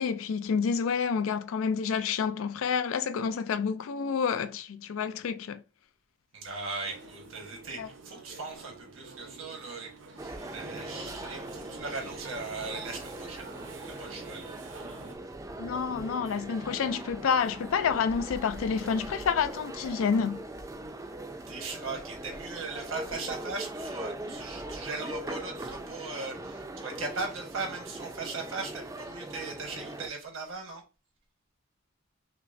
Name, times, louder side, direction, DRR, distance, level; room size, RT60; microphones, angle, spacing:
voice 1, 0.0-5.6 7.8-7.9 15.6-20.4, left 6 dB, 80° left, 0.4 m, -29 dB
voice 2, 6.3-13.5 13.9-14.5 21.5-30.8, right 3 dB, 85° right, 1.3 m, -38 dB
sound 1, 6.8-15.2, right 4 dB, 65° right, 0.7 m, -48 dB
sound 2, 10.2-30.1, right 1 dB, 15° right, 0.4 m, -41 dB
5.7 x 2.1 x 2.5 m
head